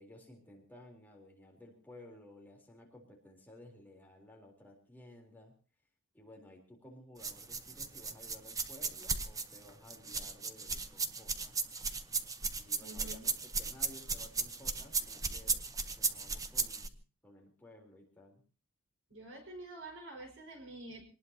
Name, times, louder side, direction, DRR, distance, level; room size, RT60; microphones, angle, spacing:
voice 1, 0.0-5.5 6.1-11.6 12.6-18.4, left 1 dB, 10° left, 0 dB, 3.9 m, -56 dB
sound 1, 7.2-16.9, right 4 dB, 15° right, 0.9 m, -36 dB
voice 2, 12.8-13.3 19.1-21.0, right 2 dB, 60° right, 4 dB, 5.6 m, -48 dB
25.5 x 19.5 x 2.9 m, 0.36 s
head